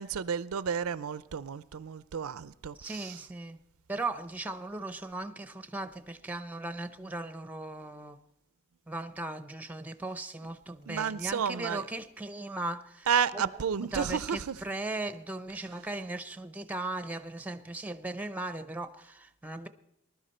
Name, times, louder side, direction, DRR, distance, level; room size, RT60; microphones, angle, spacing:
voice 1, 0.0-3.2 10.9-11.8 13.1-14.6, right 7 dB, 70° right, 0.5 m, -31 dB
voice 2, 2.8-3.6 3.9-8.2 8.9-13.1 13.3-13.5 13.9-19.7, right 2 dB, 5° right, 0.7 m, -38 dB
20.0 x 11.5 x 4.3 m
head